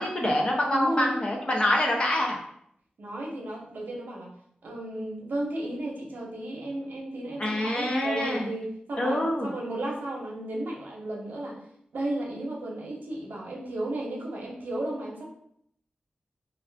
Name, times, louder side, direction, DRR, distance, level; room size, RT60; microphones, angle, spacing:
voice 1, 0.0-2.4 7.4-8.5 9.0-9.5, left 1 dB, 35° left, -1 dB, 0.6 m, -26 dB
voice 2, 0.7-1.2 3.0-4.3 4.6-11.6 11.9-15.2, right 1 dB, 80° right, -2 dB, 0.7 m, -33 dB
2.5 x 2.4 x 3.3 m, 0.71 s
wide cardioid pair, 120°, 3 cm